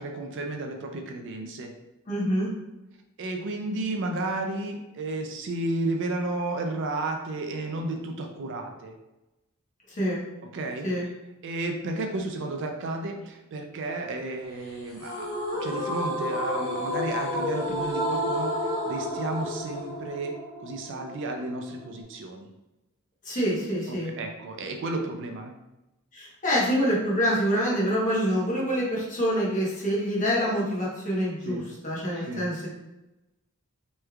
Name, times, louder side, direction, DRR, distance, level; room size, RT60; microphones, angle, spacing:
voice 1, 0.0-1.7 3.2-8.9 10.5-10.9 11.4-15.3 15.6-20.3 20.6-22.5 23.9-25.5 31.4-31.7 32.2-32.4, right 2 dB, 55° right, 4 dB, 0.4 m, -32 dB
voice 2, 2.1-2.5 10.0-10.2 10.8-11.0 23.2-24.1 26.1-32.7, equal, 35° left, -6 dB, 1.0 m, -26 dB
sound 1, 15.0-22.0, left 1 dB, 65° left, 0.8 m, -31 dB
3.2 x 3.1 x 2.3 m, 0.98 s
head